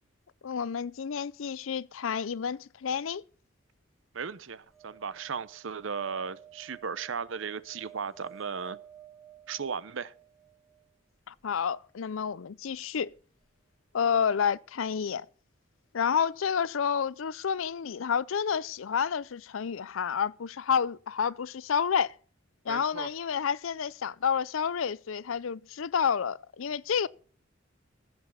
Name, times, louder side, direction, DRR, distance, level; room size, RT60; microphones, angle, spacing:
voice 1, 0.4-3.2 11.3-13.1 13.9-15.3 15.9-22.1 22.7-27.1, left 7 dB, 75° left, 0.5 m, -29 dB
voice 2, 4.1-8.8 9.5-10.1 14.1-14.2 22.7-23.1, right 6 dB, 70° right, 0.7 m, -36 dB
sound 1, 4.7-10.9 13.2-13.3 13.4-13.5, right 11 dB, ahead, 1.0 m, -53 dB
15.5 x 6.0 x 7.1 m
head